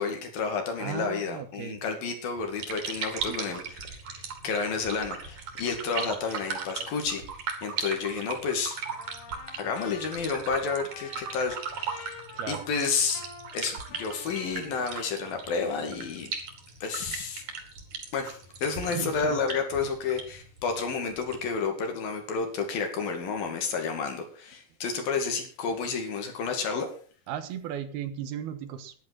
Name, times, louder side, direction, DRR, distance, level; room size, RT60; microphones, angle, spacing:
voice 1, 0.0-3.6 3.9-7.2 7.6-8.8 9.6-12.1 12.5-13.2 13.5-16.3 16.8-17.4 18.1-26.9, left 5 dB, 65° left, 5 dB, 4.0 m, -30 dB
voice 2, 0.8-1.8 3.2-3.6 12.3-12.6 18.8-19.4 27.3-28.9, right 10 dB, 80° right, 10 dB, 3.2 m, -36 dB
sound 1, 2.4-21.5, right 5 dB, 55° right, 3.5 m, -38 dB
Trumpet, 8.9-15.5, left 5 dB, 85° left, 3.8 m, -48 dB
11.5 x 10.5 x 6.1 m, 0.42 s
omnidirectional pair, 4.4 m